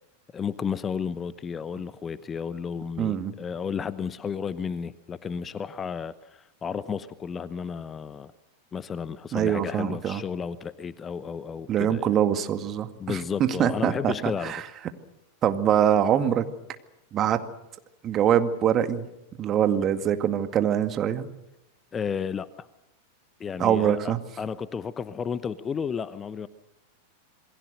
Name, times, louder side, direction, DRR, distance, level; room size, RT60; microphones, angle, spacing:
voice 1, 0.3-8.3 8.7-12.1 13.0-14.5 21.9-22.7 23.4-26.5, left 6 dB, 20° left, 16 dB, 0.9 m, -32 dB
voice 2, 3.0-3.3 9.3-10.2 11.7-14.6 15.4-16.4 17.1-17.4 18.0-19.1 19.4-21.2 23.6-24.2, right 9 dB, 30° right, 9 dB, 2.1 m, -24 dB
28.0 x 22.0 x 6.7 m, 0.90 s
figure-of-eight pair, 90°, 0 cm